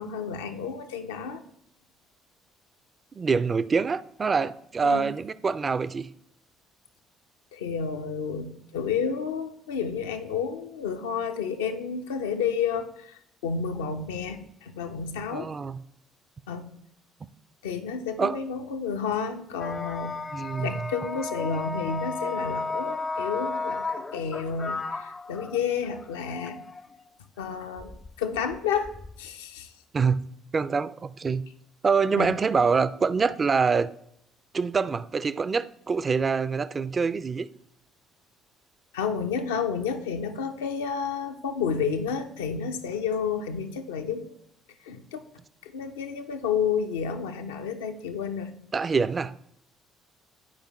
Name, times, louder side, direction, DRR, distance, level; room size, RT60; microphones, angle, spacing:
voice 1, 0.0-1.4 4.8-5.1 7.5-15.5 16.5-16.7 17.6-20.1 20.6-23.9 24.1-26.6 27.4-28.9 29.2-29.7 32.2-32.3 38.9-44.2 44.8-45.2 45.6-48.5, left 6 dB, 75° left, 0.6 m, -30 dB
voice 2, 3.2-6.1 15.3-15.8 18.2-18.4 20.3-20.9 29.9-30.2 30.5-31.5 31.8-33.9 34.5-37.5 48.7-49.5, right 5 dB, 30° right, 0.3 m, -25 dB
sound 1, 19.6-27.0 27.8-29.3, left 3 dB, 25° left, 0.5 m, -34 dB
10.0 x 5.0 x 3.1 m
figure-of-eight pair, 50°, 0 cm